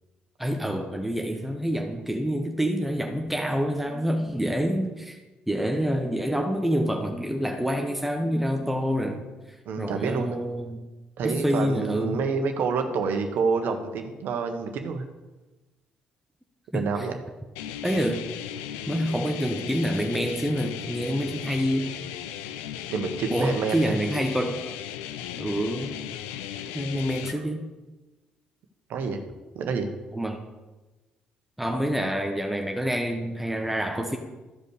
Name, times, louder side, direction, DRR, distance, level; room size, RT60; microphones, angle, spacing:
voice 1, 0.4-5.2 5.5-9.2 9.8-10.9 11.2-12.2 16.7-16.8 17.8-18.3 18.9-21.9 23.3-24.6 25.4-26.0 26.7-27.7 30.1-30.4 31.6-34.2, equal, 5° right, 3 dB, 1.2 m, -27 dB
voice 2, 9.6-10.4 11.2-15.0 16.7-17.2 22.9-24.0 27.3-27.4 28.9-29.2 29.5-29.9, right 5 dB, 65° right, 5 dB, 1.4 m, -28 dB
sound 1, 17.6-27.3, left 10 dB, 85° left, 0.5 m, -36 dB
14.0 x 5.3 x 6.5 m, 1.2 s
hypercardioid pair, 55°, 3 cm